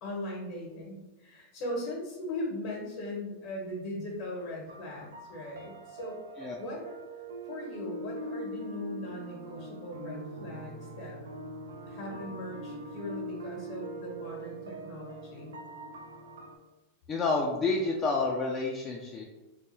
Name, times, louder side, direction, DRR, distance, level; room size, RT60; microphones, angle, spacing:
voice 1, 0.0-6.2 6.6-6.9 7.5-11.3 11.9-15.6, left 1 dB, 55° left, -2 dB, 0.8 m, -39 dB
sound 1, 4.7-16.6, right 1 dB, 85° right, 0.3 m, -42 dB
voice 2, 17.1-19.2, left 3 dB, 25° left, -2 dB, 0.3 m, -29 dB
2.3 x 2.2 x 3.0 m, 1.1 s
hypercardioid pair, 120°, 0 cm